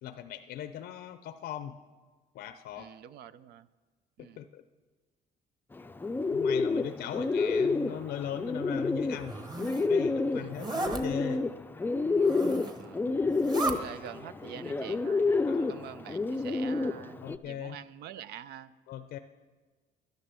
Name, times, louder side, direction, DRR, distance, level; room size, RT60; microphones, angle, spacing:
voice 1, 0.0-1.8 2.3-2.9 4.2-4.6 6.3-9.4 9.9-11.4 15.5-15.8 17.2-17.8 18.9-19.2, left 10 dB, 70° left, 10 dB, 0.6 m, -39 dB
voice 2, 2.8-3.7 4.2-4.4 7.4-7.8 10.4-10.5 12.4-13.0 13.7-15.2 15.5-18.7, right 10 dB, 75° right, 14 dB, 0.6 m, -46 dB
Bird, 5.7-17.4, left 3 dB, 10° left, 0.4 m, -29 dB
Zipper (clothing), 9.1-9.9 10.5-11.0 12.1-12.8 13.2-13.8, right 3 dB, 25° right, 1.1 m, -35 dB
11.5 x 10.5 x 6.9 m, 1.4 s
cardioid pair, 110°, 17 cm